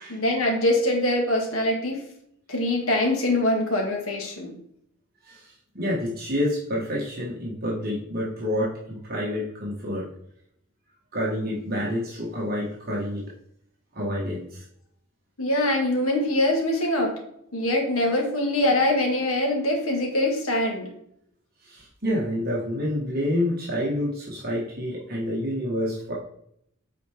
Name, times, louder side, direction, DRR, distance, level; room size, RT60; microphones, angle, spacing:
voice 1, 0.1-2.0 2.5-4.5 15.4-17.1 17.5-20.9, left 1 dB, 80° left, 1 dB, 2.0 m, -23 dB
voice 2, 5.2-10.0 11.1-13.3 13.9-14.6 21.6-26.1, left 1 dB, 45° right, -5 dB, 1.6 m, -28 dB
8.3 x 4.5 x 3.5 m, 0.71 s
head